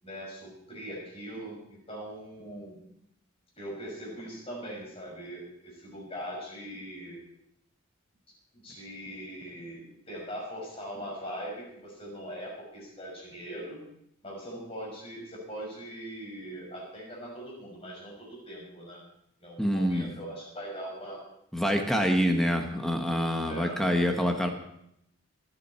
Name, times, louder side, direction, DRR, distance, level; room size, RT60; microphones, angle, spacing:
voice 1, 0.0-2.8 3.6-7.2 8.6-13.8 14.2-19.0 19.4-21.2 23.5-23.9, equal, 25° left, -2 dB, 5.8 m, -41 dB
voice 2, 19.6-20.1 21.5-24.5, equal, ahead, 4 dB, 1.2 m, -26 dB
25.5 x 8.9 x 4.4 m, 0.74 s
head